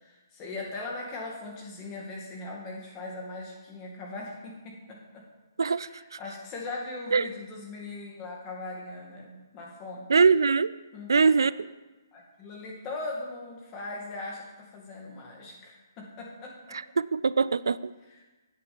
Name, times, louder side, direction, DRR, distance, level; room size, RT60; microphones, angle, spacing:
voice 1, 0.0-5.2 5.8-10.2 10.9-11.4 12.1-16.8, left 2 dB, 25° left, -1 dB, 2.2 m, -40 dB
voice 2, 5.6-5.9 7.1-7.3 10.1-10.8 11.1-11.7 16.7-17.9, right 5 dB, 80° right, 17 dB, 0.3 m, -23 dB
8.5 x 5.1 x 7.0 m, 1.2 s
hypercardioid pair, 145°, 2 cm